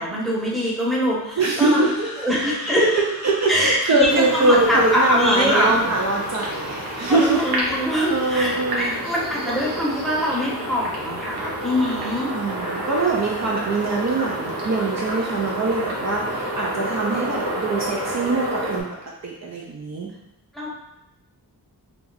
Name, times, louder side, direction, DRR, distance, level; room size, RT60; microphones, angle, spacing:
voice 1, 0.0-1.9 2.2-2.8 3.5-5.8 7.1-12.3 20.5-20.7, equal, ahead, -5 dB, 0.8 m, -23 dB
voice 2, 1.4-7.8 8.1-8.9 12.3-18.9 19.2-20.1, right 3 dB, 45° right, -2 dB, 0.5 m, -23 dB
sound 1, 1.7-7.6, left 1 dB, 45° left, 0.8 m, -40 dB
sound 2, 4.1-18.8, right 1 dB, 75° right, 0.8 m, -29 dB
2.7 x 2.3 x 3.9 m, 0.89 s
wide cardioid pair, 95°, 37 cm